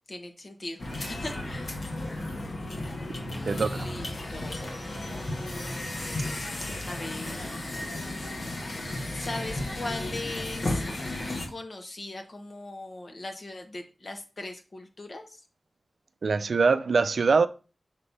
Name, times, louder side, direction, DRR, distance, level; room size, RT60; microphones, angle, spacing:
voice 1, 0.1-1.9 3.5-5.9 6.8-7.5 9.1-10.9 11.5-15.4, left 2 dB, 45° left, 1.3 m, -40 dB
sound 1, 0.8-11.5, left 1 dB, 65° left, 1.8 m, -34 dB
voice 2, 16.2-17.5, right 4 dB, 70° right, 0.4 m, -22 dB
6.7 x 3.2 x 5.5 m
wide cardioid pair, 115°, 0 cm